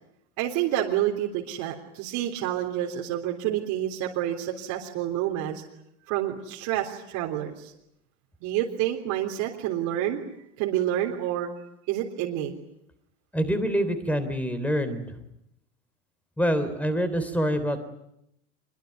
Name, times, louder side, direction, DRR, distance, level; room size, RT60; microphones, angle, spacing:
voice 1, 0.4-5.6 6.1-7.7 8.4-10.2 10.6-11.5 11.9-12.5, right 12 dB, 45° right, 0 dB, 3.6 m, -28 dB
voice 2, 13.3-15.1 16.4-17.8, equal, 5° left, 11 dB, 3.6 m, -26 dB
25.0 x 22.5 x 9.5 m, 0.79 s
hypercardioid pair, 130°, 41 cm